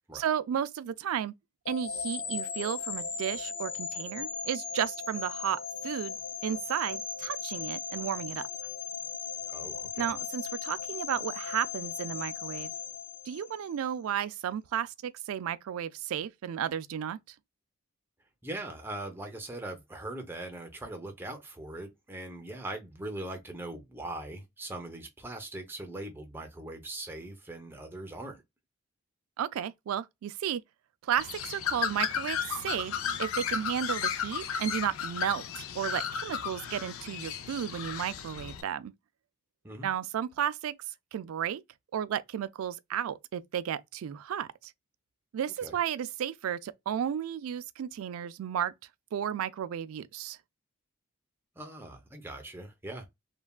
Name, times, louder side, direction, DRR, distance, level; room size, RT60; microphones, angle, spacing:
voice 1, 0.1-1.3 1.7-6.2 6.4-8.4 10.0-12.7 13.3-17.2 29.4-30.6 31.0-38.9 39.8-40.7 41.1-41.6 41.9-44.7 45.3-48.7 49.1-50.4, right 9 dB, 85° right, 0.3 m, -33 dB
sound 1, 1.6-13.8, left 6 dB, 55° left, 0.7 m, -37 dB
voice 2, 9.5-10.0 18.4-28.4 39.6-39.9 45.6-45.7 51.6-53.1, right 1 dB, 10° right, 0.6 m, -41 dB
Bird, 31.2-38.6, left 7 dB, 90° left, 0.4 m, -34 dB
3.2 x 2.2 x 2.2 m
head